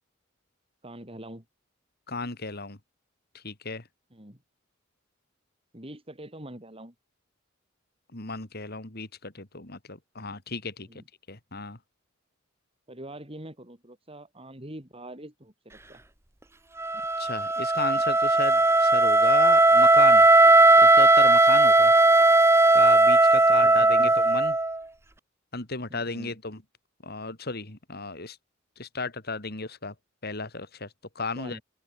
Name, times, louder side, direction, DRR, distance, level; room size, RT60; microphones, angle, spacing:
voice 1, 0.8-1.4 4.1-4.4 5.7-6.9 10.8-11.1 12.9-16.0 23.3-24.2 25.9-26.4 31.3-31.6, right 1 dB, 30° right, 6.8 m, -44 dB
voice 2, 2.1-2.8 3.4-3.8 8.1-10.9 11.3-11.8 17.2-20.3 20.8-21.9 22.7-24.5 25.5-26.6 27.0-28.4 28.8-29.9 30.2-30.9 31.1-31.6, left 3 dB, 50° left, 3.2 m, -34 dB
Wind instrument woodwind instrument, 16.8-24.8, right 2 dB, 15° right, 1.2 m, -18 dB
open air
head